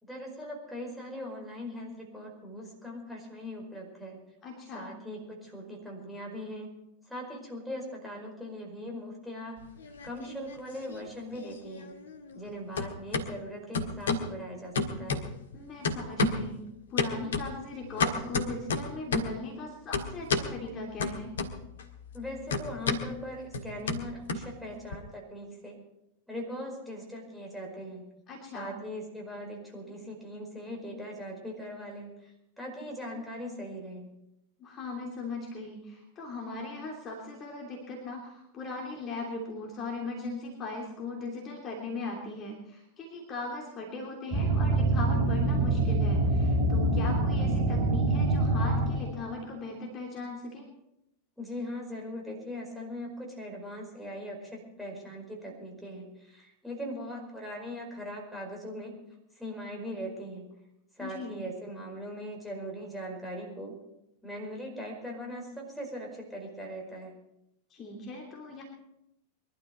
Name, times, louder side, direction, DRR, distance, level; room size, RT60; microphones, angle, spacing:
voice 1, 0.0-4.2 4.7-6.7 7.1-9.6 10.0-12.0 12.3-15.3 22.1-25.8 26.3-28.1 28.5-34.1 51.4-58.9 59.4-60.5 61.0-63.7 64.2-67.2, equal, ahead, -2 dB, 5.0 m, -40 dB
voice 2, 4.4-4.9 15.5-16.6 16.9-21.3 28.3-28.7 34.6-50.7 61.0-61.3 67.7-68.6, left 3 dB, 30° left, -1 dB, 3.1 m, -39 dB
sound 1, 9.6-10.6 10.9-12.5 12.7-13.3 13.7-14.3 14.7-15.5 15.8-16.5 17.0-19.4 19.9-20.5 21.0-21.8 22.1-25.0, left 3 dB, 65° left, 1.6 m, -31 dB
sound 2, 44.3-49.4, right 2 dB, 30° right, 4.0 m, -25 dB
22.5 x 12.5 x 4.5 m, 0.84 s
figure-of-eight pair, 90°, 0 cm